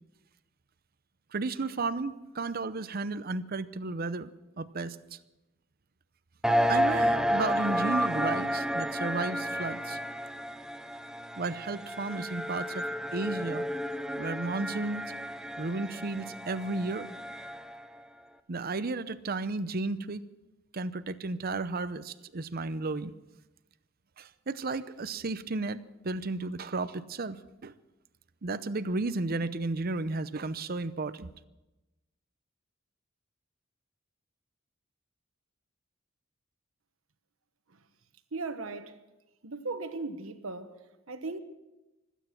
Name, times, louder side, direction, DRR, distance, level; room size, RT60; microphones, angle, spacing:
voice 1, 1.3-5.0 6.7-10.0 11.4-12.8 13.1-13.7 14.1-15.1 15.6-17.1 18.5-20.2 20.7-23.1 24.2-27.4 27.6-27.7 28.4-31.3, right 3 dB, 45° right, 0.7 m, -33 dB
sound 1, 6.4-17.8, equal, 5° right, 0.6 m, -31 dB
voice 2, 38.3-39.0 39.4-41.4, right 3 dB, 90° right, 1.2 m, -38 dB
25.0 x 9.2 x 5.9 m
head